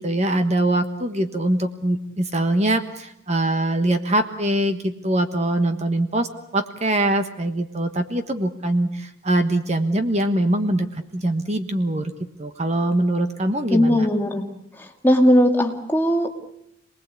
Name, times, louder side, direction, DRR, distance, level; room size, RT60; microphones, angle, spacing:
voice 1, 0.0-12.1 12.4-14.1, right 1 dB, 35° right, 7 dB, 1.3 m, -23 dB
voice 2, 13.7-14.5 15.0-16.3, equal, 10° left, 2 dB, 2.3 m, -18 dB
28.0 x 20.0 x 8.4 m, 0.78 s
head